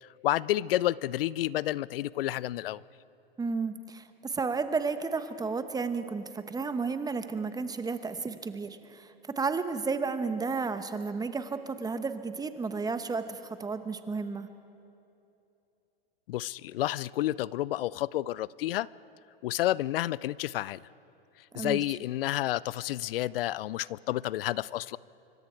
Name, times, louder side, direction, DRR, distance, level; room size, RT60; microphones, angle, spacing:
voice 1, 0.0-2.8 16.3-18.9 19.4-20.8 21.5-25.0, left 14 dB, 65° left, 22 dB, 0.5 m, -30 dB
voice 2, 3.4-14.5 21.5-21.8, right 4 dB, 10° right, 10 dB, 1.1 m, -32 dB
25.5 x 24.0 x 4.6 m, 2.8 s
hypercardioid pair, 105°, 31 cm